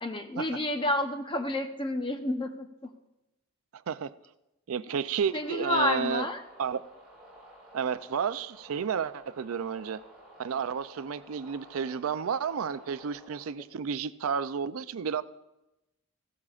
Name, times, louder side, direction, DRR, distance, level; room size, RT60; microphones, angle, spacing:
voice 1, 0.0-2.7 5.3-6.4, left 2 dB, 25° left, 5 dB, 0.8 m, -29 dB
voice 2, 4.7-6.3 6.6-6.8 7.7-10.0 10.4-15.2, right 7 dB, 75° right, 14 dB, 0.4 m, -31 dB
sound 1, 5.1-13.5, equal, 5° right, 5.0 m, -53 dB
16.0 x 13.5 x 2.4 m, 0.96 s
head